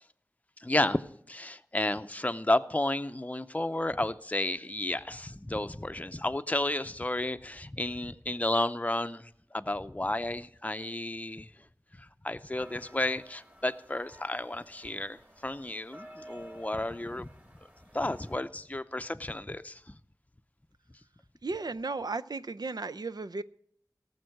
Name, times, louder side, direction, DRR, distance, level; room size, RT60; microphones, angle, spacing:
voice 1, 0.6-1.0 1.3-11.5 12.0-17.3 17.9-20.0, left 1 dB, 20° left, 10 dB, 0.6 m, -32 dB
sound 1, 12.6-18.4, right 1 dB, 25° right, 2.7 m, -52 dB
voice 2, 21.4-23.4, right 3 dB, 90° right, 11 dB, 0.5 m, -35 dB
17.5 x 7.3 x 6.4 m, 0.65 s
wide cardioid pair, 45°, 7 cm